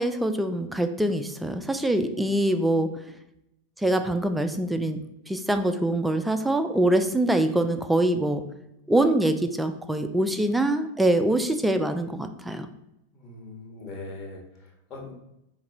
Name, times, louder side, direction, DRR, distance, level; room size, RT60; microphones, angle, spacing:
voice 1, 0.0-2.9 3.8-8.4 8.9-12.7, right 1 dB, 5° right, 8 dB, 0.3 m, -24 dB
voice 2, 13.1-15.1, left 2 dB, 30° left, -1 dB, 1.1 m, -41 dB
4.7 x 2.2 x 3.9 m, 0.85 s
figure-of-eight pair, 90°, 0 cm